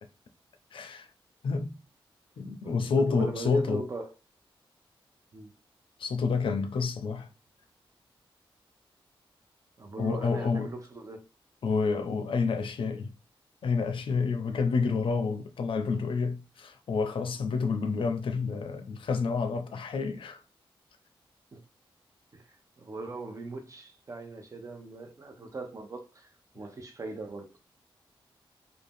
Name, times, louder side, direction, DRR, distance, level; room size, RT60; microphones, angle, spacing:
voice 1, 0.7-1.1 1.4-1.7 2.4-3.9 6.0-7.3 10.0-10.7 11.6-13.1 13.6-20.4, left 4 dB, 70° left, 0.5 m, -29 dB
voice 2, 2.6-4.1 5.3-5.5 9.8-11.3 21.5-21.6 22.3-27.5, right 3 dB, 35° right, 0.6 m, -40 dB
2.6 x 2.1 x 3.4 m
wide cardioid pair, 105°, 9 cm